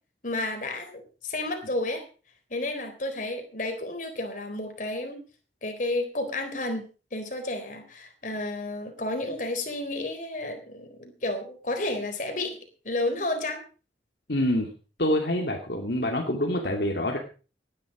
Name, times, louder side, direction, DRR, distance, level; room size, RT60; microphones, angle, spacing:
voice 1, 0.2-2.0 2.5-5.2 5.6-6.8 7.1-12.6 12.8-13.6, left 2 dB, 45° left, 5 dB, 3.9 m, -31 dB
voice 2, 14.3-14.7 15.0-17.2, left 1 dB, 65° left, 1 dB, 2.6 m, -26 dB
18.0 x 10.5 x 5.1 m, 0.37 s
head